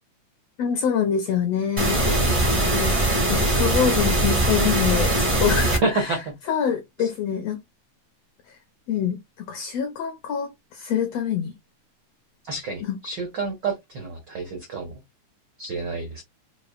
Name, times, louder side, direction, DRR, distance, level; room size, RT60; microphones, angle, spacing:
voice 1, 0.6-2.1 2.7-6.2 6.5-7.6 8.9-9.2 9.5-11.5 12.8-12.9, left 8 dB, 75° left, 1.5 m, -25 dB
sound 1, 1.8-5.8, right 1 dB, 45° right, 0.4 m, -21 dB
voice 2, 2.0-2.7 5.8-6.3 7.0-7.1 12.4-14.9 15.6-16.2, right 3 dB, 80° right, 1.0 m, -29 dB
6.6 x 2.4 x 2.5 m
omnidirectional pair, 3.6 m